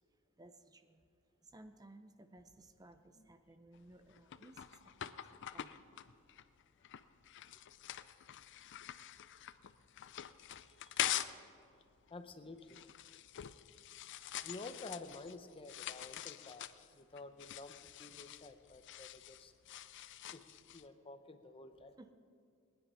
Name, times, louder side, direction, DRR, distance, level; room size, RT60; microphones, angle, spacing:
voice 1, 0.4-1.0 1.4-5.8 13.9-14.1 22.0-22.1, right 1 dB, 20° right, 9 dB, 0.6 m, -59 dB
sound 1, 3.7-11.5 11.8-20.9, left 12 dB, 60° left, 0.5 m, -45 dB
voice 2, 6.9-7.5 10.6-11.2 12.1-13.0 14.4-16.7 16.9-19.5 20.3-20.5 20.7-22.0, left 3 dB, 25° left, 9 dB, 0.7 m, -51 dB
19.5 x 10.0 x 5.6 m, 2.3 s
head